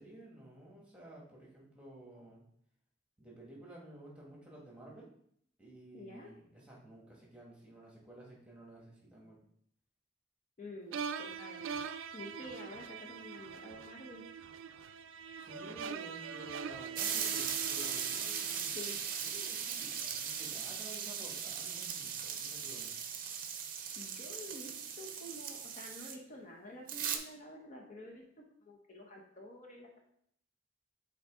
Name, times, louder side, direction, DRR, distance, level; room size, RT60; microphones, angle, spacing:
voice 1, 0.0-2.4 3.2-5.1 5.6-9.4 15.4-18.8 19.2-22.9, right 1 dB, 5° right, -4 dB, 1.5 m, -53 dB
voice 2, 5.9-6.3 10.6-11.7 12.1-14.2 18.7-19.0 24.0-28.2 28.6-30.0, left 1 dB, 40° left, 0 dB, 0.9 m, -49 dB
sound 1, 10.9-19.1, right 6 dB, 90° right, 0.4 m, -43 dB
sound 2, 17.0-26.2 26.9-27.2, right 7 dB, 45° right, 0.6 m, -38 dB
6.9 x 4.1 x 3.6 m, 0.69 s
head